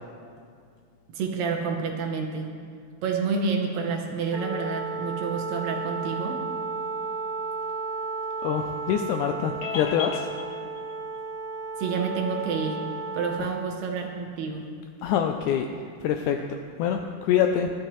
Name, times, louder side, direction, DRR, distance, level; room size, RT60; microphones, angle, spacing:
voice 1, 1.1-2.5 3.0-6.4 11.8-12.8 13.1-14.7, right 5 dB, 70° right, 2 dB, 1.8 m, -29 dB
Wind instrument woodwind instrument, 4.3-13.5, right 4 dB, 25° left, 1.1 m, -33 dB
voice 2, 8.4-10.8 13.4-13.5 15.0-15.7 16.0-17.7, left 8 dB, 85° left, 5 dB, 1.7 m, -26 dB
16.0 x 11.5 x 3.1 m, 2.2 s
omnidirectional pair, 4.0 m